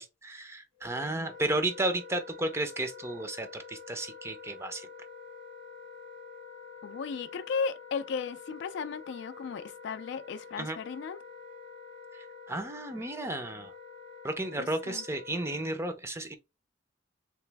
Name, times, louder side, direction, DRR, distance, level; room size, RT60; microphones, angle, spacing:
voice 1, 0.0-4.9 10.6-10.8 12.5-13.7 14.2-16.3, right 2 dB, 15° right, 0.5 m, -33 dB
Wind instrument woodwind instrument, 0.8-15.7, left 5 dB, 70° right, 1.3 m, -47 dB
voice 2, 6.8-11.2 14.6-15.0, left 5 dB, 65° left, 0.3 m, -35 dB
3.2 x 3.0 x 3.4 m
head